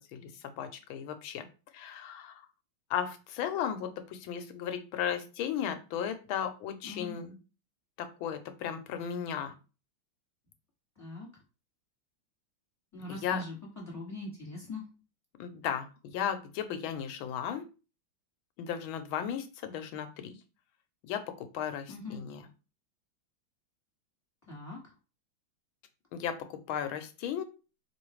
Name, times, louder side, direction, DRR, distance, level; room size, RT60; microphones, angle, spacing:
voice 1, 0.0-1.5 1.7-2.4 2.9-7.3 8.0-9.5 13.1-13.4 15.4-17.6 18.6-20.4 21.0-22.4 26.1-27.4, left 8 dB, 85° left, 9 dB, 1.4 m, -35 dB
voice 2, 6.8-7.2 10.9-11.3 12.9-14.8 21.9-22.2 24.5-24.8, left 2 dB, 10° left, -3 dB, 1.6 m, -42 dB
4.5 x 3.1 x 3.1 m, 0.33 s
omnidirectional pair, 2.2 m